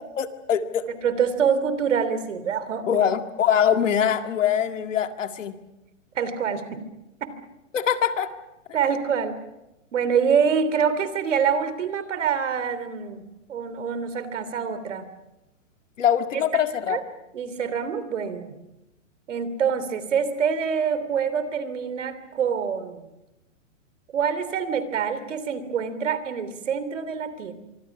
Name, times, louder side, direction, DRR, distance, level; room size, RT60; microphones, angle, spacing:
voice 1, 0.2-0.8 2.9-5.6 7.7-8.3 16.0-17.0, left 9 dB, 75° left, 7 dB, 2.0 m, -23 dB
voice 2, 1.0-3.0 6.1-6.8 8.7-9.4 9.9-13.2 13.5-15.1 16.3-17.0 17.3-18.5 19.3-23.1 24.1-27.5, right 7 dB, 70° right, 12 dB, 3.2 m, -26 dB
26.0 x 24.5 x 6.0 m, 0.94 s
hypercardioid pair, 175°, 38 cm